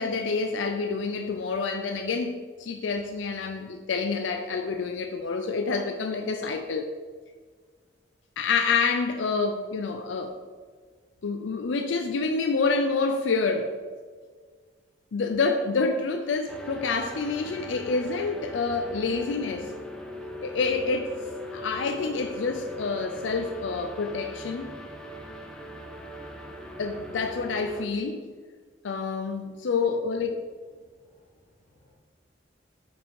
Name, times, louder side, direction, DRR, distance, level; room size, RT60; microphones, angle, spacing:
voice 1, 0.0-2.3 2.6-6.9 8.4-10.3 11.2-13.7 15.1-19.7 20.4-21.2 21.5-24.7 26.8-28.2 28.8-30.5, left 4 dB, 90° left, 0.5 m, -28 dB
sound 1, 16.5-27.9, left 1 dB, 5° left, 0.5 m, -40 dB
voice 2, 30.8-31.9, left 1 dB, 40° left, 1.8 m, -58 dB
5.4 x 5.0 x 4.7 m
head